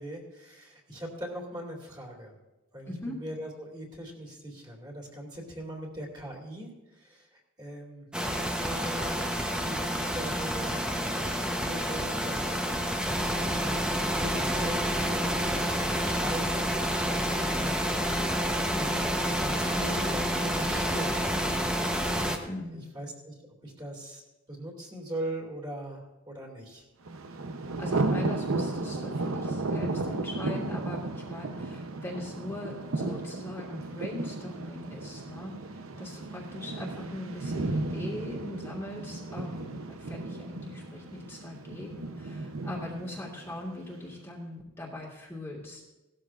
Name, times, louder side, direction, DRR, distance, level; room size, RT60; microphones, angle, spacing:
voice 1, 0.0-2.3 2.7-9.2 9.6-12.6 13.2-21.6 22.0-23.3 23.6-24.2 24.5-26.8, right 1 dB, 20° right, -1 dB, 2.5 m, -41 dB
voice 2, 2.9-3.2 22.4-22.9 27.8-45.8, left 1 dB, 10° left, -5 dB, 1.8 m, -40 dB
sound 1, 8.1-22.4, equal, 5° right, 0.9 m, -29 dB
Thunder, 27.1-44.0, right 2 dB, 75° right, 0.8 m, -34 dB
17.5 x 13.0 x 2.5 m, 1.1 s
head